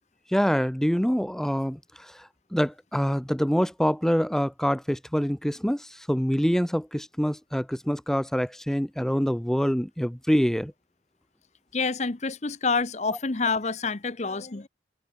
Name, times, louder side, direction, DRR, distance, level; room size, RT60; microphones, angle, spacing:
voice 1, 0.3-10.7, equal, 5° left, 0.6 m, -25 dB
voice 2, 11.7-14.7, left 4 dB, 40° left, 0.8 m, -27 dB
head